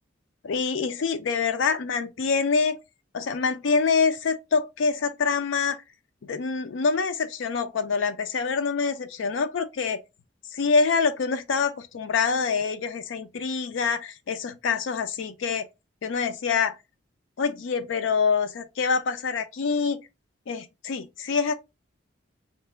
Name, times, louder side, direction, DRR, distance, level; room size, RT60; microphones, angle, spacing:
voice 1, 0.4-2.8 3.1-5.8 6.2-10.0 10.5-15.7 16.0-16.7 17.4-20.0 20.5-21.5, left 5 dB, 75° left, 0.4 m, -25 dB
3.2 x 2.8 x 3.3 m
head